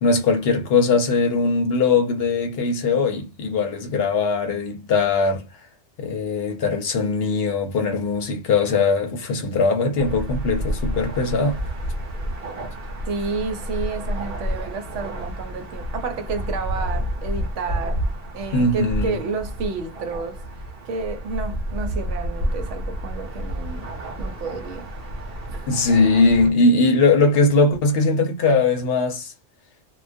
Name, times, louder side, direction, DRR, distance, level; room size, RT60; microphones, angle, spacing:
voice 1, 0.0-5.4 6.0-11.6 18.5-19.2 25.7-29.3, left 3 dB, 60° left, 0.7 m, -20 dB
sound 1, 10.0-26.5, equal, 55° right, 1.0 m, -30 dB
voice 2, 13.1-18.1 18.3-20.4 20.8-23.9 24.2-24.9 25.5-25.7, right 4 dB, 80° right, 0.9 m, -30 dB
2.3 x 2.1 x 2.5 m
omnidirectional pair, 1.2 m